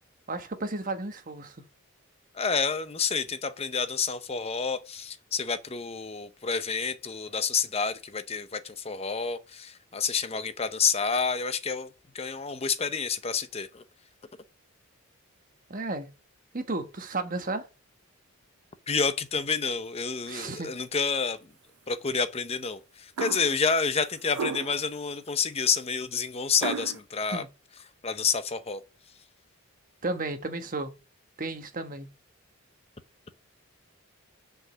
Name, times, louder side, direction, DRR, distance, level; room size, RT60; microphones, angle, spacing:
voice 1, 0.3-1.6 15.7-16.1 16.5-17.7 20.3-20.7 27.3-27.5 30.0-30.9 31.4-32.1, right 2 dB, 40° right, 1.2 m, -33 dB
voice 2, 2.3-11.9 12.1-13.8 18.9-21.4 21.9-27.4 28.0-28.8, left 5 dB, 30° left, 0.7 m, -29 dB
sound 1, 23.2-23.6 24.3-24.9 26.6-27.0, right 6 dB, 80° right, 0.5 m, -33 dB
6.2 x 5.2 x 6.9 m
head